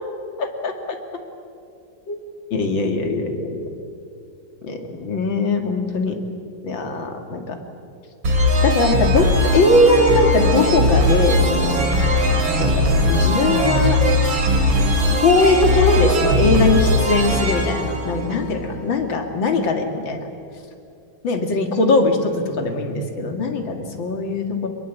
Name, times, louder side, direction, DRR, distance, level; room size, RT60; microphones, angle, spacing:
voice 1, 0.4-0.7 2.1-2.2 2.5-3.7 4.6-6.2 6.6-7.6 8.6-11.9 12.6-14.0 15.2-20.2 21.2-24.7, left 2 dB, 75° left, 5 dB, 2.9 m, -20 dB
sound 1, 8.2-18.8, left 1 dB, 80° right, 3.5 m, -19 dB
25.0 x 22.0 x 8.4 m, 2.6 s
omnidirectional pair, 2.1 m